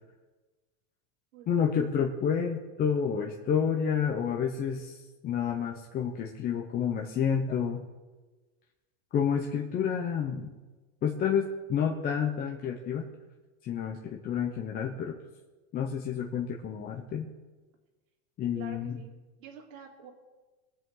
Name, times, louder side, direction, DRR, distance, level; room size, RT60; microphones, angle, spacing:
voice 1, 1.5-7.9 9.1-10.5 11.0-13.1 13.6-15.2 15.7-17.3 18.4-19.0, left 7 dB, 25° left, 1 dB, 0.9 m, -29 dB
voice 2, 18.5-20.1, right 7 dB, 75° right, 1 dB, 3.2 m, -48 dB
23.0 x 7.8 x 3.9 m, 1.2 s
supercardioid pair, 150°, 39 cm